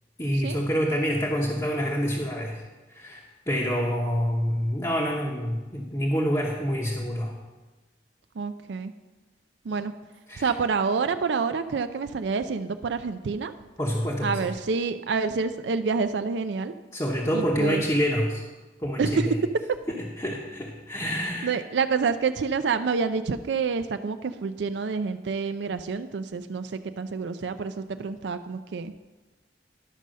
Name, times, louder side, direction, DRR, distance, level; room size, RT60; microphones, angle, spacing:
voice 1, 0.2-2.6 2.9-7.4 10.3-10.5 13.8-14.4 16.9-18.4 18.8-19.4 20.2-21.5, equal, 20° left, -3 dB, 0.9 m, -27 dB
voice 2, 8.4-8.9 9.6-9.9 10.4-13.5 14.2-16.7 17.3-17.8 19.0-19.3 21.4-29.1, right 5 dB, 85° right, 9 dB, 0.4 m, -28 dB
11.0 x 5.5 x 6.3 m, 1.2 s
head